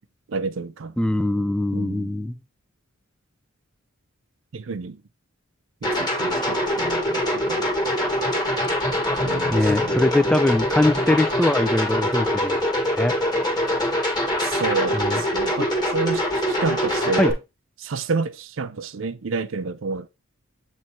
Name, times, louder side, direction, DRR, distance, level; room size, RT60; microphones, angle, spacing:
voice 1, 0.3-0.9 1.7-2.2 4.5-5.0 5.8-7.7 9.2-10.0 14.4-17.3 17.8-20.1, right 4 dB, 65° right, 0.5 m, -29 dB
voice 2, 1.0-2.4 9.5-12.6 13.0-13.2 14.9-15.2 17.2-17.3, left 1 dB, 5° left, 0.3 m, -22 dB
sound 1, 5.8-17.3, equal, 20° left, 1.4 m, -23 dB
7.6 x 3.1 x 4.3 m
head